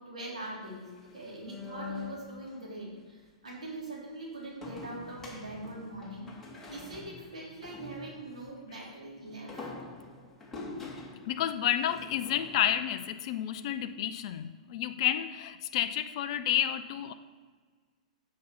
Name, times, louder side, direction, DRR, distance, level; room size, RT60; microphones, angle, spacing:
voice 1, 0.0-6.3 6.7-9.7, right 1 dB, 85° right, -4 dB, 3.3 m, -42 dB
sound 1, 0.7-2.6 4.6-8.4 9.3-12.8, left 3 dB, 10° left, 3.1 m, -45 dB
voice 2, 11.2-17.1, left 11 dB, 55° left, 9 dB, 0.6 m, -30 dB
7.8 x 6.5 x 7.1 m, 1.5 s
hypercardioid pair, 110°, 4 cm